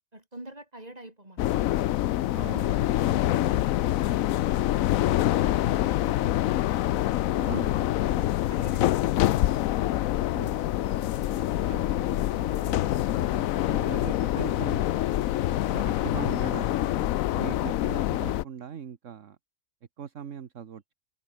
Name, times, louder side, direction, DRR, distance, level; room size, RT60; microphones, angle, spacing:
voice 1, 0.1-1.6 2.4-6.7 7.3-7.7 8.1-9.5 11.2-11.4, right 1 dB, 30° right, 5.4 m, -47 dB
sound 1, 1.4-18.4, left 14 dB, 90° left, 1.0 m, -26 dB
voice 2, 2.3-2.7 7.4-7.9 10.3-10.9 11.7-12.9 13.7-14.9 15.7-19.4 20.0-20.9, right 8 dB, 65° right, 1.5 m, -40 dB
sound 2, 10.8-16.1, left 3 dB, 60° left, 3.6 m, -44 dB
open air
omnidirectional pair, 1.4 m